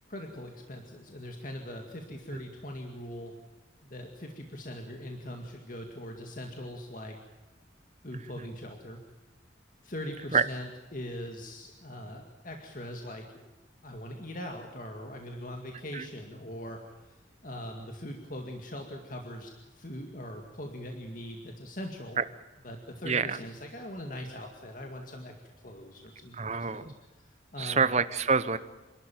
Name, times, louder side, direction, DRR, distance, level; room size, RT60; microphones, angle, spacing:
voice 1, 0.1-3.3 3.8-7.2 8.0-9.0 9.8-13.5 13.8-22.2 22.6-25.3 25.6-26.9 27.2-27.9, left 1 dB, 45° left, 3 dB, 2.1 m, -41 dB
voice 2, 23.0-23.4 26.3-26.9 27.6-28.6, right 5 dB, 35° right, 13 dB, 0.9 m, -27 dB
26.5 x 13.0 x 9.0 m, 1.1 s
head